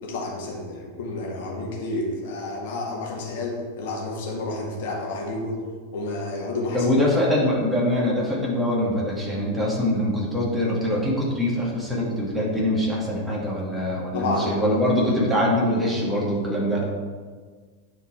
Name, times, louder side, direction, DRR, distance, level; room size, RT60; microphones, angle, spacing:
voice 1, 0.0-5.6 5.9-6.9 14.1-14.9, left 2 dB, 55° left, -1 dB, 1.9 m, -30 dB
voice 2, 6.7-16.8, left 1 dB, 10° right, -4 dB, 2.3 m, -23 dB
9.5 x 4.8 x 4.6 m, 1.5 s
figure-of-eight pair, 90°, 0 cm